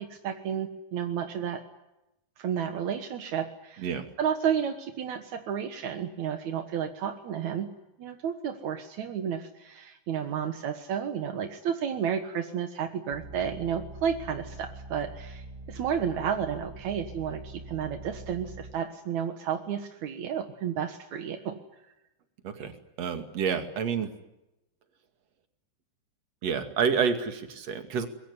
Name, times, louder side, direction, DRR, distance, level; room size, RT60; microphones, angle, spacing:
voice 1, 0.0-1.6 2.4-3.9 4.2-7.7 8.0-21.8, right 8 dB, 60° right, 7 dB, 2.0 m, -32 dB
sound 1, 13.1-18.7, right 2 dB, 20° right, 5.7 m, -44 dB
voice 2, 23.0-24.1 26.4-28.1, right 6 dB, 45° right, 7 dB, 2.8 m, -28 dB
24.0 x 22.0 x 9.7 m, 0.91 s
omnidirectional pair, 5.1 m